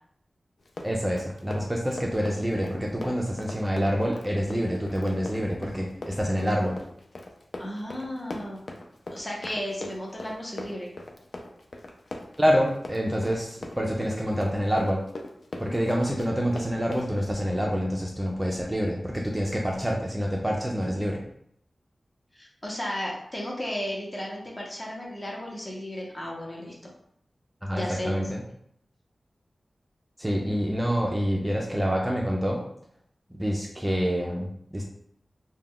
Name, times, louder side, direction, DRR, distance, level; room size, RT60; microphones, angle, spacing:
Run, 0.6-17.1, left 2 dB, 70° left, 0.4 m, -40 dB
voice 1, 0.8-6.8 12.4-15.0 15.6-21.2 27.6-28.4 30.2-32.6 33.3-34.8, equal, 15° right, -1 dB, 0.4 m, -27 dB
voice 2, 7.6-8.6 9.1-10.9 22.3-26.9 27.7-28.2, equal, 25° left, -2 dB, 0.7 m, -34 dB
2.3 x 2.1 x 3.5 m, 0.70 s
wide cardioid pair, 75°, 0 cm